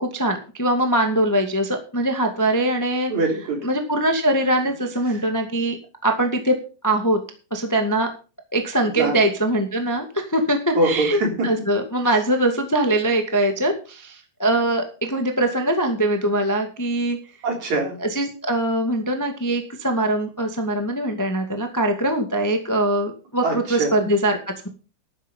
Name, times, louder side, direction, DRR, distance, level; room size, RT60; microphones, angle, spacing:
voice 1, 0.0-3.1 3.6-5.8 6.0-6.6 6.8-7.2 7.5-8.1 8.5-17.2 18.0-24.3, right 1 dB, 10° left, 4 dB, 1.4 m, -22 dB
voice 2, 3.1-3.7 5.1-5.2 8.8-9.2 10.7-11.5 17.4-18.0 23.4-24.1, right 2 dB, 60° right, 2 dB, 4.8 m, -23 dB
12.0 x 10.0 x 5.5 m, 0.35 s
omnidirectional pair, 3.7 m